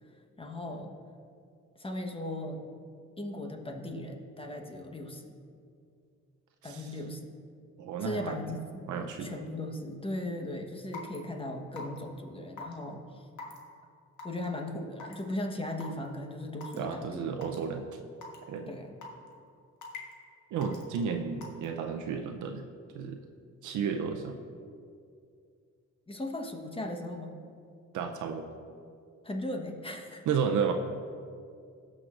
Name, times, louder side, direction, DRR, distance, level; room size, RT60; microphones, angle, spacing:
voice 1, 0.4-0.9 1.8-2.6 3.2-5.4 6.6-7.2 8.0-13.3 14.2-17.3 18.7-19.1 26.1-27.3 29.2-30.2, left 1 dB, 20° left, 3 dB, 1.2 m, -38 dB
voice 2, 7.8-8.4 8.9-9.3 16.8-17.9 18.5-18.7 20.5-22.6 22.9-23.2 23.6-24.4 27.9-28.5 30.3-30.7, right 6 dB, 75° right, 4 dB, 0.7 m, -32 dB
Raindrop / Water tap faucet / Drip, 10.9-11.2 11.8-12.0 12.6-12.7 13.4-13.6 14.2-14.5 15.0-15.2 15.8-15.9 16.6-16.8 17.4-17.6 18.2-18.4 19.0-19.3 19.8-20.1 20.6-20.8 21.4-21.7, left 4 dB, 75° left, 1.5 m, -42 dB
17.5 x 6.3 x 2.5 m, 2.3 s
cardioid pair, 90°, 30 cm